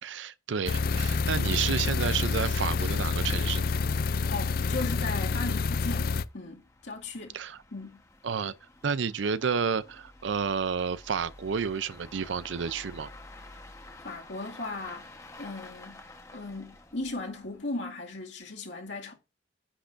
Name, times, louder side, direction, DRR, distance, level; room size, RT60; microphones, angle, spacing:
voice 1, 0.0-3.7 7.3-7.6 8.2-8.5 8.8-13.1, right 6 dB, 80° right, 0.5 m, -30 dB
sound 1, 0.7-6.2, left 4 dB, 50° left, 0.4 m, -28 dB
voice 2, 4.3-7.4 7.7-8.0 14.0-16.0 16.3-19.1, left 2 dB, 75° left, 2.2 m, -37 dB
sound 2, 5.6-17.9, left 2 dB, 15° left, 1.1 m, -51 dB
9.8 x 8.7 x 2.6 m
head